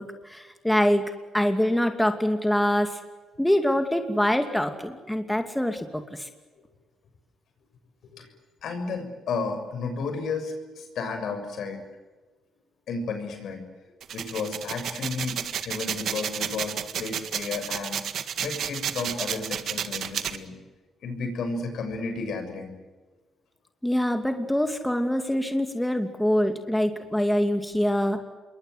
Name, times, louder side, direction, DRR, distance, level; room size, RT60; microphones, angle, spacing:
voice 1, 0.0-3.0 3.4-6.3 23.8-28.2, equal, 5° left, 6 dB, 2.6 m, -25 dB
voice 2, 8.6-11.9 12.9-13.6 14.1-18.0 18.4-20.5 21.0-22.7, left 4 dB, 70° left, 7 dB, 6.9 m, -32 dB
sound 1, 14.0-20.4, right 9 dB, 65° right, 1.8 m, -31 dB
27.5 x 23.0 x 8.1 m, 1.3 s
cardioid pair, 90°, 0 cm